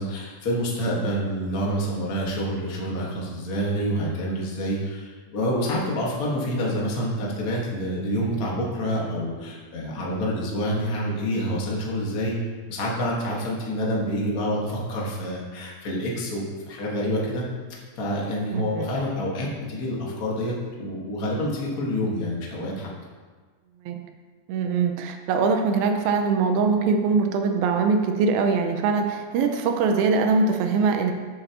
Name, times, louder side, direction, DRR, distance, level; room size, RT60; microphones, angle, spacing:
voice 1, 0.0-12.4 12.7-17.4 18.0-22.9, equal, 40° left, -4 dB, 1.3 m, -27 dB
voice 2, 18.5-18.9 23.9-24.0 24.5-31.1, right 4 dB, 85° right, 4 dB, 2.6 m, -22 dB
10.5 x 8.7 x 3.0 m, 1.5 s
omnidirectional pair, 4.2 m